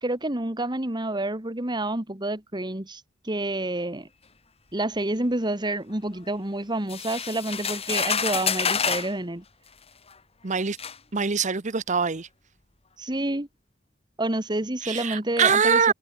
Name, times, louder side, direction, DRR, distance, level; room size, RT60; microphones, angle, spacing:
voice 1, 0.0-4.1 4.7-9.4 13.0-13.5 14.2-15.9, right 1 dB, 25° right, 1.9 m, -28 dB
sound 1, 6.9-9.1 10.1-10.2 10.8-11.0, left 6 dB, 30° left, 2.6 m, -27 dB
voice 2, 10.4-10.8 11.1-12.3 14.8-15.9, right 6 dB, 40° right, 0.9 m, -23 dB
head